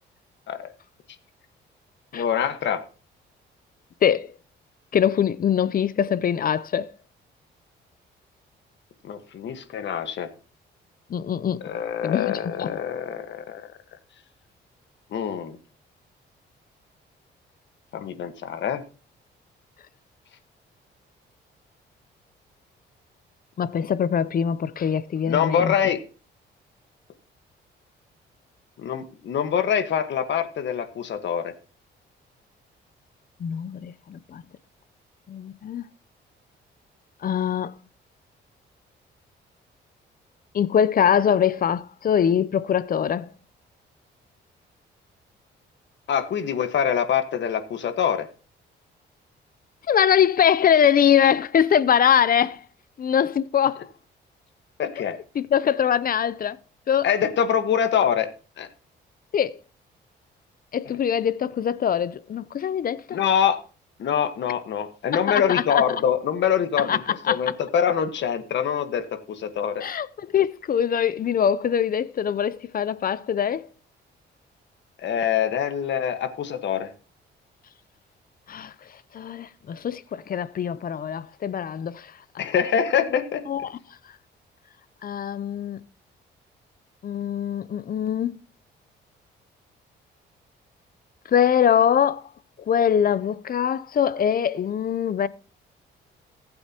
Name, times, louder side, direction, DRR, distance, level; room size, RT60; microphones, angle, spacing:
voice 1, 2.1-2.8 9.0-10.3 11.6-13.6 15.1-15.6 17.9-18.8 25.2-26.0 28.8-31.5 46.1-48.3 54.8-55.1 57.0-58.3 58.6-58.7 63.1-63.6 64.0-67.0 67.3-69.8 75.0-76.9 82.4-83.4, left 8 dB, 65° left, 1.5 m, -24 dB
voice 2, 4.9-6.9 11.1-11.6 12.0-12.8 23.6-25.7 33.4-34.4 35.3-35.9 37.2-37.7 40.5-43.3 49.9-52.6 53.0-53.9 55.3-56.6 56.9-57.1 59.3-59.6 60.7-63.2 65.1-65.8 66.8-67.4 69.8-73.7 78.5-78.7 79.1-82.1 82.3-82.4 83.5-83.8 85.0-85.8 87.0-88.4 91.3-92.2 92.7-95.3, left 8 dB, 45° left, 0.7 m, -23 dB
18.5 x 7.9 x 3.0 m
cardioid pair, 90°, 20 cm